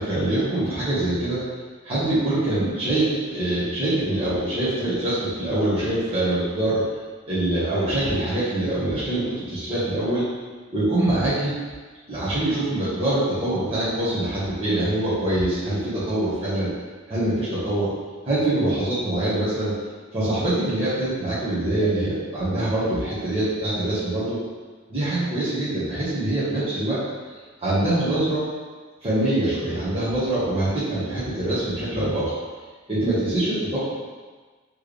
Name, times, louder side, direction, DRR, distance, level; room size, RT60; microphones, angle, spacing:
voice 1, 0.0-1.4 1.8-6.8 7.3-10.2 10.7-11.5 12.1-16.7 17.1-17.9 18.2-19.7 20.1-24.4 24.9-27.0 27.6-28.5 29.0-32.3 32.9-33.8, right 1 dB, 30° right, -13 dB, 1.3 m, -24 dB
4.6 x 3.3 x 3.2 m, 1.4 s
head